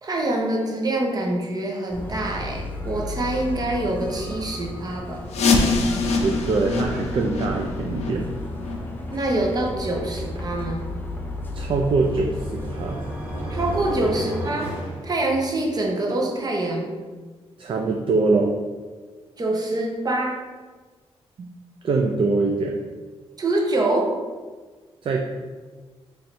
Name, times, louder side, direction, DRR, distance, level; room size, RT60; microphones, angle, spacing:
voice 1, 0.0-5.2 9.1-10.8 13.5-14.7 15.0-16.9 19.4-20.4 23.4-24.2, right 2 dB, 35° right, 0 dB, 0.8 m, -25 dB
sound 1, 1.9-14.0, left 2 dB, 20° left, 0.5 m, -34 dB
sound 2, 5.3-10.9 11.2-11.3 11.9-12.0 12.6-12.7 13.2-13.3, left 3 dB, 85° left, 0.5 m, -26 dB
voice 2, 6.2-8.3 11.5-13.0 17.6-18.5 21.4-21.5 21.8-22.7 25.0-25.3, right 3 dB, 50° right, 1 dB, 0.4 m, -23 dB
sound 3, 11.4-15.8, right 1 dB, 90° right, 1.2 m, -34 dB
3.1 x 2.6 x 4.3 m, 1.4 s
cardioid pair, 95°, 11 cm